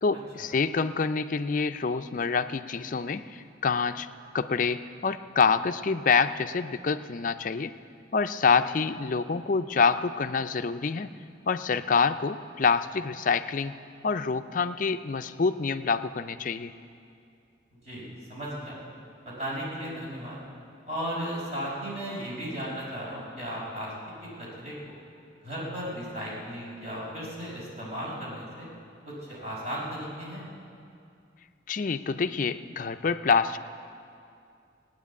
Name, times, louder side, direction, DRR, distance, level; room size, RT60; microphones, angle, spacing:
voice 1, 0.0-4.1 4.3-7.7 8.1-11.1 11.5-13.7 14.0-16.7 31.7-33.6, left 5 dB, 45° left, 10 dB, 0.4 m, -26 dB
voice 2, 17.8-18.8 19.2-20.4 20.9-23.9 24.4-24.9 25.4-28.7 29.0-30.5, equal, 35° right, -6 dB, 4.9 m, -35 dB
17.5 x 9.5 x 8.3 m, 2.5 s
head